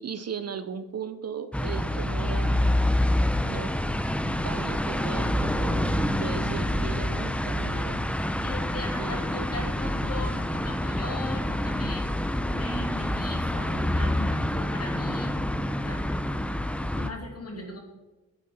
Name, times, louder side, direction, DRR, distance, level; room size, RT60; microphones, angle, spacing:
voice 1, 0.0-2.6 3.4-3.7 4.2-8.0 9.0-9.7 17.5-17.8, right 6 dB, 45° right, 11 dB, 0.7 m, -38 dB
sound 1, 1.5-17.1, left 1 dB, 5° left, 0.7 m, -27 dB
voice 2, 8.4-15.4 15.8-16.1 16.9-17.8, left 2 dB, 45° left, 2 dB, 2.6 m, -39 dB
10.5 x 8.3 x 4.3 m, 1.1 s
cardioid pair, 65°, 35 cm